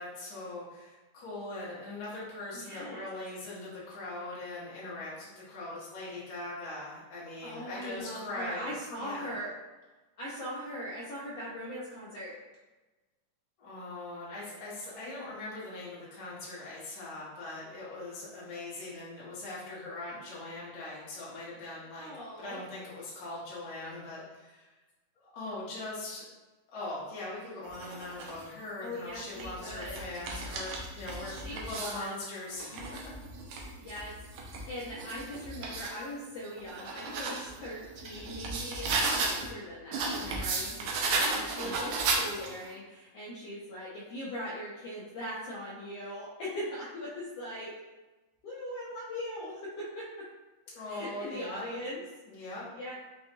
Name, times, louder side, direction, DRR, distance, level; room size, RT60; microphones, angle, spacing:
voice 1, 0.0-8.7 9.0-9.3 13.6-22.1 22.4-24.7 25.1-26.2 26.7-33.1 50.7-51.6 52.2-52.7, left 2 dB, 60° left, -8 dB, 0.9 m, -41 dB
voice 2, 2.5-3.1 7.4-9.5 10.2-12.4 22.0-22.6 28.8-30.0 31.2-32.2 33.8-34.1 34.7-47.7 48.4-50.1 50.9-52.0 52.7-52.9, equal, 85° left, -7 dB, 1.3 m, -40 dB
sound 1, 27.7-28.4 29.1-32.1 32.5-36.0 36.4-39.5 39.9-42.7, right 3 dB, 80° right, 1.7 m, -35 dB
5.4 x 2.2 x 3.0 m, 1.2 s
omnidirectional pair, 3.7 m